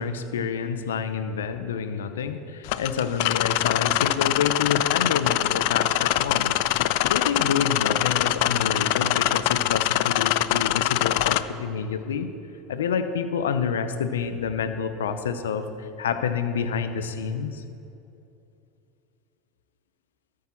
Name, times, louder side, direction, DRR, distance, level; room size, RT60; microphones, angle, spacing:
voice 1, 0.0-6.5 7.1-12.3 12.7-17.6, left 6 dB, 85° left, 10 dB, 0.7 m, -28 dB
sound 1, 2.6-11.4, left 15 dB, 65° left, 0.4 m, -23 dB
13.0 x 8.7 x 4.5 m, 2.7 s
hypercardioid pair, 85°, 0 cm